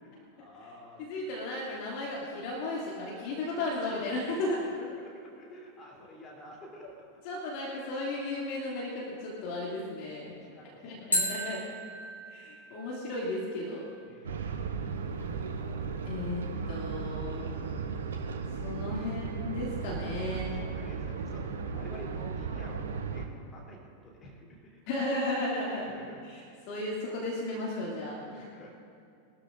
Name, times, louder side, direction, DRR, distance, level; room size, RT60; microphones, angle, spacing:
voice 1, 0.0-1.1 4.8-7.2 10.4-11.2 14.1-14.5 17.3-17.8 18.8-19.2 20.0-22.8 23.1-24.8 25.7-26.3 28.3-28.7, equal, 20° left, -3 dB, 3.5 m, -50 dB
voice 2, 1.0-4.6 7.2-10.3 10.8-11.6 12.3-13.9 16.0-17.5 18.6-20.5 24.9-25.9 26.7-28.5, left 2 dB, 45° left, -4 dB, 2.8 m, -34 dB
sound 1, 3.1-4.1 11.1-14.1, equal, 85° left, 3.5 m, -36 dB
sound 2, 14.2-23.2, right 5 dB, 65° right, 1.1 m, -35 dB
22.0 x 13.0 x 2.7 m, 2.5 s
figure-of-eight pair, 90°, 0 cm